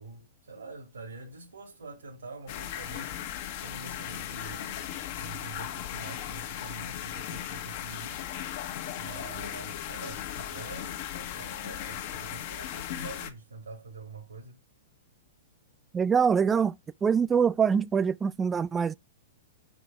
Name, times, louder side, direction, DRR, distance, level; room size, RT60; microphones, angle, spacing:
voice 1, 0.0-8.5 8.9-14.6, right 3 dB, 80° right, 2.1 m, -45 dB
sound 1, 2.5-13.3, left 11 dB, 50° left, 1.1 m, -37 dB
voice 2, 15.9-18.9, right 6 dB, 15° right, 0.4 m, -24 dB
5.0 x 4.9 x 5.8 m
hypercardioid pair, 110°, 0 cm